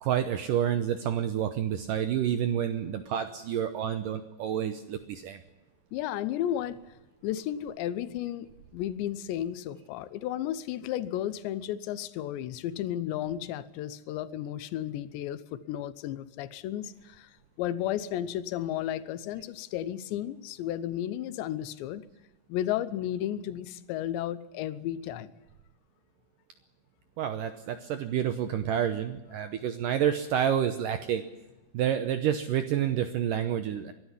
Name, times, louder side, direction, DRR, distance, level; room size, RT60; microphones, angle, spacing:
voice 1, 0.0-5.4 27.2-31.3 31.7-33.9, right 9 dB, 75° right, 10 dB, 2.0 m, -29 dB
voice 2, 5.9-6.8 7.2-17.3 17.6-22.0 22.5-25.3 29.4-29.5, left 11 dB, 90° left, 15 dB, 3.2 m, -33 dB
22.5 x 12.5 x 9.8 m, 1.0 s
omnidirectional pair, 4.9 m